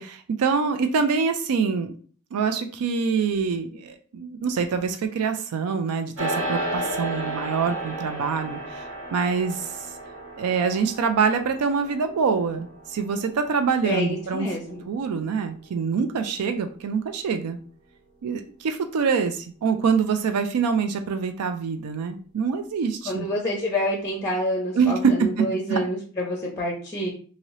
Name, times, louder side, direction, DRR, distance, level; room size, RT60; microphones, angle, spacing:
voice 1, 0.0-2.0 2.3-8.8 9.1-9.8 10.4-14.5 14.9-17.6 18.2-23.3 24.8-25.8, right 5 dB, 80° right, 7 dB, 0.4 m, -25 dB
sound 1, 6.2-15.7, right 1 dB, 55° right, 0.9 m, -34 dB
voice 2, 13.8-14.9 23.0-27.1, left 1 dB, 15° left, -1 dB, 0.6 m, -28 dB
2.8 x 2.8 x 3.0 m, 0.43 s
head